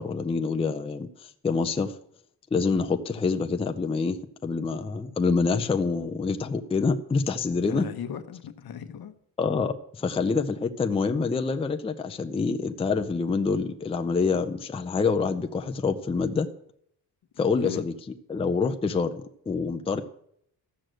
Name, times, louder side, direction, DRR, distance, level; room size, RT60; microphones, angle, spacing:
voice 1, 0.0-2.0 2.5-7.9 9.4-16.5 17.4-17.9 18.3-20.0, left 4 dB, 15° left, 0.5 m, -26 dB
voice 2, 7.5-9.1 17.4-17.8, left 8 dB, 65° left, 1.1 m, -38 dB
13.5 x 6.4 x 7.7 m
wide cardioid pair, 165°, 39 cm